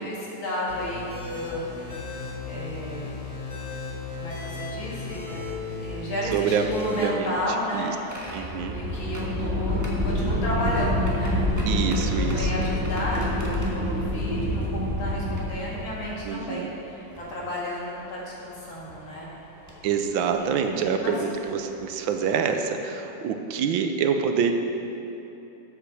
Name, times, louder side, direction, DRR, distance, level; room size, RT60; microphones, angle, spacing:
voice 1, 0.0-2.1 2.5-3.1 4.2-5.4 5.8-7.9 8.7-11.4 11.7-19.3 20.4-21.2, left 1 dB, 75° left, -5 dB, 2.8 m, -33 dB
sound 1, 0.7-7.1, left 3 dB, 35° left, 2.1 m, -35 dB
voice 2, 6.3-7.4 7.7-7.9 8.3-8.7 11.6-12.5 16.2-16.7 19.8-24.5, right 6 dB, 80° right, 6 dB, 1.4 m, -26 dB
sound 2, 7.1-16.3 17.1-17.2 18.7-18.9 19.7-19.9 21.5-21.6 22.0-22.2, left 1 dB, 10° right, 1.2 m, -27 dB
8.4 x 7.9 x 6.3 m, 3.0 s
omnidirectional pair, 2.2 m